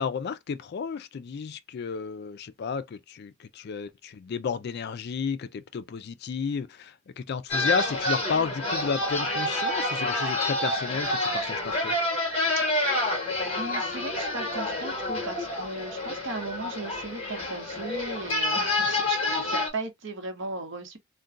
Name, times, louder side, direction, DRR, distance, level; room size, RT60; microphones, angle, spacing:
voice 1, 0.0-12.0, left 5 dB, 55° left, 0.4 m, -32 dB
sound 1, 7.5-19.7, left 2 dB, 30° left, 1.2 m, -28 dB
voice 2, 12.5-13.1 13.5-21.0, right 2 dB, 65° right, 0.8 m, -37 dB
2.5 x 2.2 x 3.6 m
head